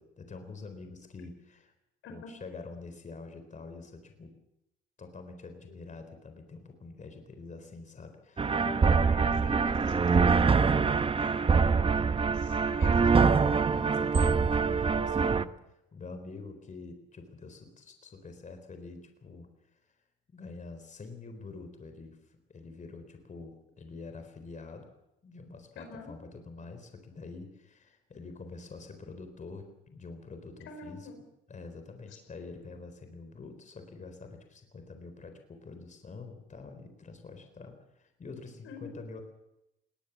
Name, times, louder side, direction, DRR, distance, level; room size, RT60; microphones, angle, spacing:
voice 1, 0.0-1.7 2.1-4.3 5.0-8.5 9.5-9.6 13.7-15.5 15.9-19.8 20.3-24.9 25.2-31.1 31.5-39.2, left 3 dB, 40° left, 7 dB, 4.1 m, -46 dB
sound 1, 8.4-15.4, right 5 dB, 25° right, 0.8 m, -24 dB
voice 2, 8.5-13.5 25.8-26.1 30.7-31.2 38.6-39.0, left 5 dB, 90° left, 5 dB, 5.4 m, -46 dB
20.5 x 18.5 x 7.3 m, 0.89 s
cardioid pair, 90°, 20 cm